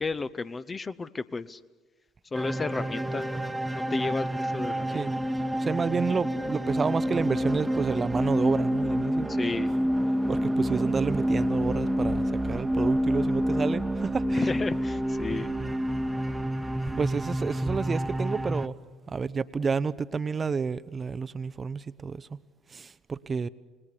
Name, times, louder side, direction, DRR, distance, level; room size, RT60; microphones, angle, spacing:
voice 1, 0.0-1.6 2.3-5.0 9.3-9.7 14.3-15.5, left 4 dB, 25° left, 14 dB, 0.8 m, -33 dB
sound 1, 2.3-18.7, equal, 10° right, 1.2 m, -28 dB
voice 2, 5.6-9.3 10.3-14.4 17.0-18.8 19.1-22.4 22.7-23.5, right 5 dB, 30° right, 15 dB, 0.7 m, -30 dB
28.0 x 20.0 x 8.5 m, 1.3 s
figure-of-eight pair, 55°, 0 cm